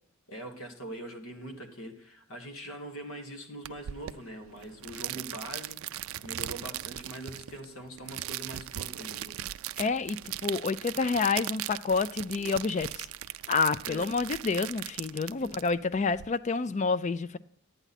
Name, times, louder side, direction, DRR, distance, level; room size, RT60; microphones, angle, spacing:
voice 1, 0.3-5.8 6.2-9.4 13.8-14.1 15.4-15.5, right 1 dB, 80° left, 1.4 m, -42 dB
sound 1, 3.6-16.3, right 14 dB, 75° right, 0.3 m, -39 dB
voice 2, 9.8-13.1 13.5-17.4, left 4 dB, 35° left, 0.3 m, -28 dB
11.5 x 9.0 x 4.1 m
head